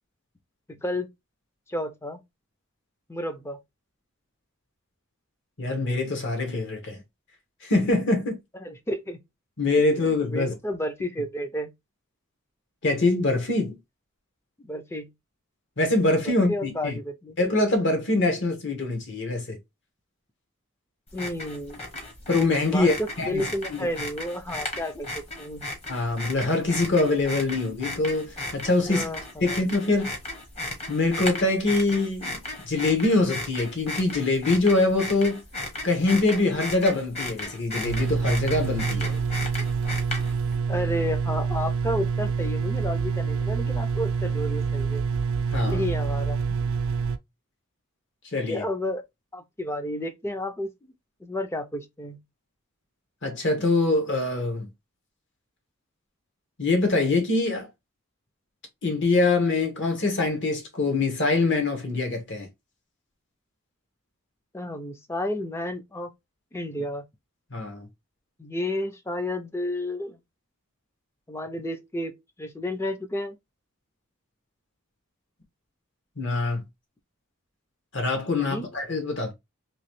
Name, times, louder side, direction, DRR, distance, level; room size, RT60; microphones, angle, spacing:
voice 1, 0.7-1.1 1.7-2.2 3.1-3.6 8.5-9.2 10.0-11.7 14.6-15.1 16.2-17.4 21.1-21.8 22.7-25.6 28.8-29.6 39.1-39.3 40.7-45.0 45.6-46.4 48.4-49.0 49.3-50.9 51.2-52.2 64.5-66.1 66.5-67.0 68.4-70.2 71.3-73.4 78.3-78.7, left 1 dB, 10° left, 0.4 m, -31 dB
voice 2, 5.6-7.0 7.6-8.4 9.6-10.5 12.8-13.8 15.8-17.0 17.4-19.6 22.3-23.4 23.7-23.8 25.9-29.1 29.4-30.1 30.9-32.4 32.6-35.4 35.8-39.2 45.5-45.8 48.3-48.6 53.2-54.7 56.6-57.7 58.8-62.5 67.5-67.9 76.2-76.6 77.9-79.3, left 2 dB, 55° left, 1.1 m, -24 dB
sound 1, 21.1-40.5, left 1 dB, 30° left, 0.9 m, -36 dB
sound 2, 37.8-47.2, right 5 dB, 75° right, 0.4 m, -27 dB
3.0 x 2.7 x 3.0 m
head